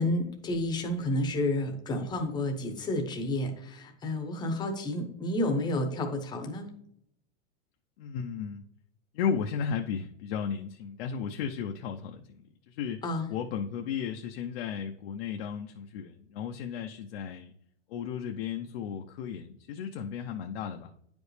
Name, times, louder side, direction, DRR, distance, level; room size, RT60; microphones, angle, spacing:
voice 1, 0.0-6.7 13.0-13.3, left 1 dB, 10° left, 4 dB, 0.9 m, -30 dB
voice 2, 8.0-8.6 9.1-12.2 12.7-13.0 13.3-17.5 17.9-20.9, left 7 dB, 55° left, 3 dB, 0.7 m, -34 dB
9.7 x 5.2 x 3.2 m, 0.73 s
supercardioid pair, 160°, 35 cm